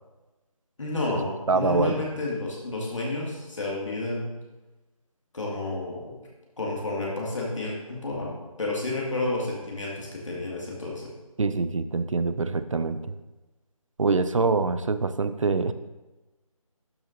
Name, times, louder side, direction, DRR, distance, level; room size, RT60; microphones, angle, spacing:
voice 1, 0.8-4.3 5.3-6.1 6.6-11.1, left 2 dB, 55° left, -4 dB, 2.1 m, -30 dB
voice 2, 1.5-2.1 11.4-13.0 14.0-15.7, right 4 dB, 60° right, 12 dB, 0.6 m, -25 dB
12.0 x 7.2 x 2.7 m, 1.1 s
figure-of-eight pair, 170°, 19 cm